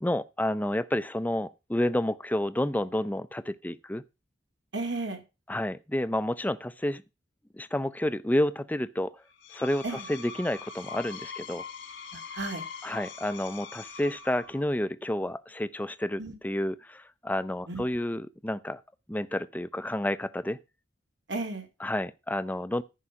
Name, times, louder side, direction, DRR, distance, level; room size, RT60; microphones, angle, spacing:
voice 1, 0.0-4.0 5.5-7.0 7.5-9.2 9.5-9.8 10.1-11.6 12.8-18.8 19.1-20.6 21.8-22.8, left 1 dB, 10° left, 0.6 m, -30 dB
voice 2, 4.7-5.2 9.8-10.1 12.1-12.7 16.2-16.4 17.7-17.8 21.3-21.7, right 2 dB, 80° right, 2.9 m, -34 dB
Screech, 9.3-14.8, left 5 dB, 85° left, 1.4 m, -42 dB
14.5 x 5.6 x 4.7 m
head